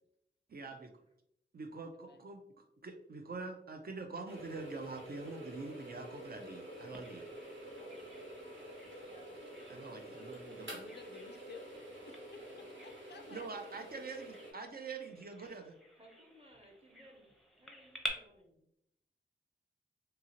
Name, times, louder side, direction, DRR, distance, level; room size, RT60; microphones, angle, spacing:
voice 1, 0.5-0.9 1.5-7.3 9.7-10.8 13.3-15.8, right 3 dB, 50° right, 4 dB, 0.4 m, -45 dB
voice 2, 1.7-2.2 7.8-8.3 9.3-9.4 10.6-11.7 12.1-13.5, left 4 dB, 60° left, 7 dB, 0.4 m, -55 dB
sound 1, 4.3-14.5, right 1 dB, 75° right, 1.1 m, -49 dB
Bird vocalization bird call bird song, 6.9-18.1, equal, ahead, 0.6 m, -50 dB
voice 3, 9.0-9.9 16.0-18.6, right 1 dB, 30° right, 0 dB, 0.9 m, -61 dB
2.8 x 2.7 x 2.7 m, 0.76 s
wide cardioid pair, 55°, 20 cm